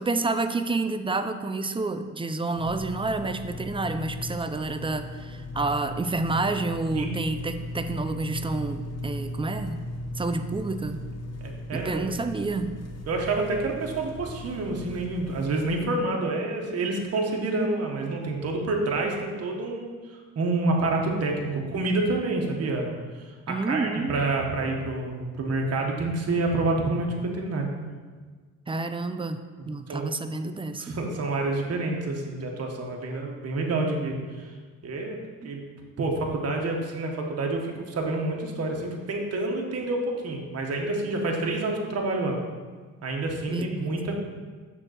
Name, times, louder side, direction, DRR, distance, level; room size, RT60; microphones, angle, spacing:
voice 1, 0.0-9.8 10.1-11.0 11.7-12.8 23.5-24.2 28.7-29.4 29.7-31.0 35.4-35.5 43.5-44.1, right 3 dB, 15° right, 9 dB, 0.4 m, -29 dB
sound 1, 2.6-15.8, left 1 dB, 55° left, 0.9 m, -37 dB
voice 2, 11.4-12.1 13.1-27.7 29.9-30.1 30.8-34.5 34.8-35.2 35.4-42.4 43.0-44.2, right 2 dB, 55° right, 1 dB, 1.3 m, -28 dB
6.4 x 4.0 x 6.4 m, 1.5 s
cardioid pair, 90°, 30 cm